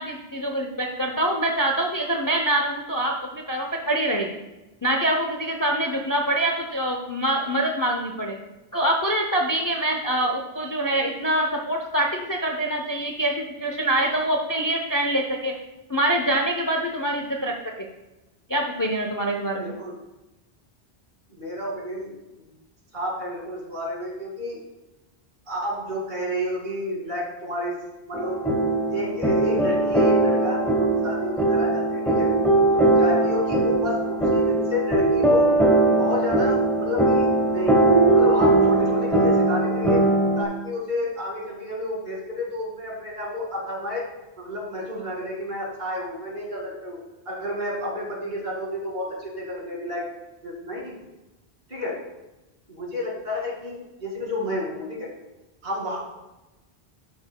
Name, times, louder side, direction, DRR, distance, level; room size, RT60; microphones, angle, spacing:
voice 1, 0.0-4.3 4.8-8.4 8.7-15.5 15.9-17.9 18.5-19.8, right 1 dB, 25° left, 1 dB, 0.6 m, -25 dB
voice 2, 19.6-20.0 21.3-22.5 22.9-24.6 25.5-27.8 28.1-28.4 28.9-32.3 32.7-35.5 36.0-37.8 38.1-40.0 40.4-44.0 44.4-50.1 50.4-51.0 51.7-52.0 52.7-55.1 55.6-56.0, left 1 dB, 50° right, -3 dB, 2.4 m, -30 dB
sound 1, 28.1-40.4, right 2 dB, ahead, 1.0 m, -20 dB
12.5 x 6.0 x 2.2 m, 1.0 s
omnidirectional pair, 1.1 m